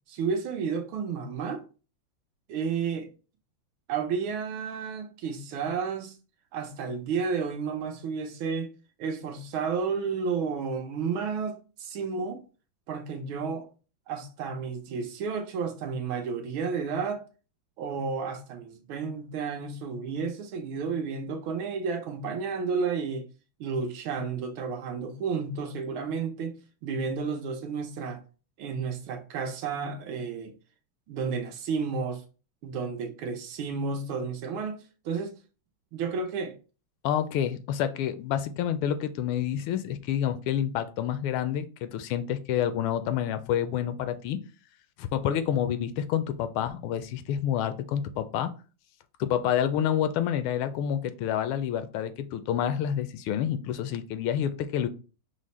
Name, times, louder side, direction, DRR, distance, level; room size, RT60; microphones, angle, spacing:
voice 1, 0.1-1.6 2.5-3.1 3.9-6.1 6.5-8.7 9.0-12.4 12.9-13.7 14.1-17.2 17.8-23.3 23.6-28.2 28.6-30.5 31.1-32.2 32.6-35.4 35.9-36.5, right 5 dB, 75° right, 1.6 m, -32 dB
voice 2, 37.0-44.4 45.0-48.5 49.2-54.9, left 10 dB, 85° left, 1.4 m, -28 dB
4.9 x 2.1 x 4.1 m
omnidirectional pair, 2.3 m